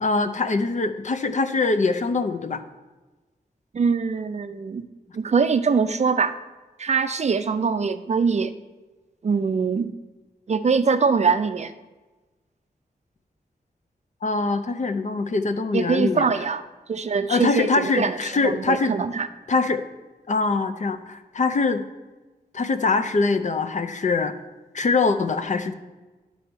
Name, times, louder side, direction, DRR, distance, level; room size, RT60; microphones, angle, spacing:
voice 1, 0.0-2.6 14.2-16.3 17.3-18.9 19.5-19.8 20.3-21.8 22.5-24.3 24.7-25.7, left 3 dB, 50° left, 8 dB, 0.5 m, -23 dB
voice 2, 3.7-4.9 5.1-6.3 6.8-8.5 9.2-9.9 10.5-11.7 15.7-16.6 16.9-18.2 18.4-19.3, right 5 dB, 45° right, 10 dB, 0.4 m, -22 dB
11.0 x 4.1 x 4.5 m, 1.2 s
wide cardioid pair, 125°, 16 cm